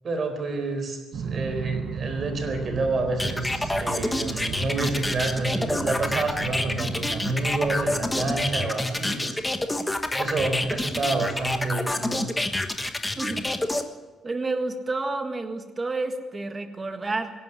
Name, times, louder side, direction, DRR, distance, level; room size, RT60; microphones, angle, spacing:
voice 1, 0.0-9.4 10.2-12.3, right 3 dB, 35° right, 6 dB, 4.4 m, -28 dB
sound 1, 1.1-8.5, right 7 dB, 50° right, 0.9 m, -35 dB
sound 2, 3.2-13.8, left 1 dB, 10° left, 1.2 m, -27 dB
voice 2, 13.2-13.5 14.2-17.3, right 3 dB, 20° right, 6 dB, 1.7 m, -30 dB
25.5 x 11.0 x 9.9 m, 1.2 s
cardioid pair, 180°, 0 cm